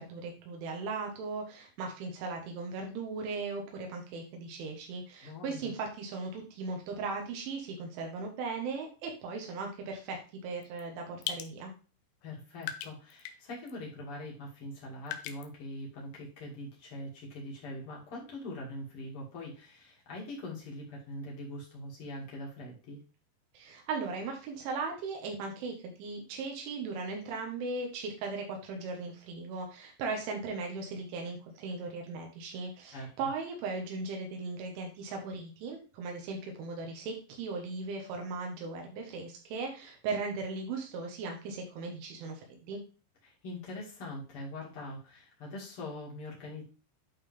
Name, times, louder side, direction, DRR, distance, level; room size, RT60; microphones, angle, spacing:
voice 1, 0.0-11.7 23.5-42.4 42.7-42.8, right 4 dB, 85° right, 2 dB, 4.0 m, -38 dB
voice 2, 5.2-5.7 12.2-23.0 32.9-33.3 43.2-46.6, left 1 dB, 35° left, -3 dB, 2.6 m, -43 dB
sound 1, 10.6-10.8 11.2-11.5 12.2-12.3 12.6-13.4 13.7-13.8 15.1-15.5, left 10 dB, 80° left, 2.3 m, -38 dB
11.0 x 4.1 x 3.6 m, 0.34 s
omnidirectional pair, 5.3 m